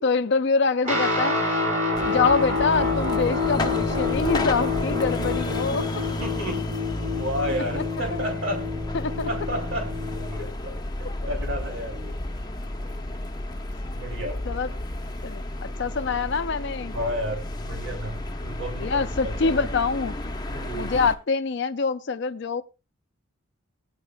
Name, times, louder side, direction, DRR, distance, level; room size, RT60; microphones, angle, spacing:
voice 1, 0.0-1.4 2.1-5.9 7.8-7.9 8.1-8.2 8.9-9.3 14.5-14.7 15.2-17.0 18.8-20.4 20.7-22.6, left 4 dB, 55° left, 0.5 m, -25 dB
Guitar, 0.8-10.5, left 3 dB, 35° right, 4.1 m, -27 dB
sound 1, 1.9-21.2, left 1 dB, 20° left, 0.8 m, -32 dB
voice 2, 6.2-6.7 7.2-8.7 9.2-12.2 13.9-14.4 16.9-19.6 20.5-21.0, equal, 70° right, 2.9 m, -32 dB
19.5 x 9.7 x 2.2 m
head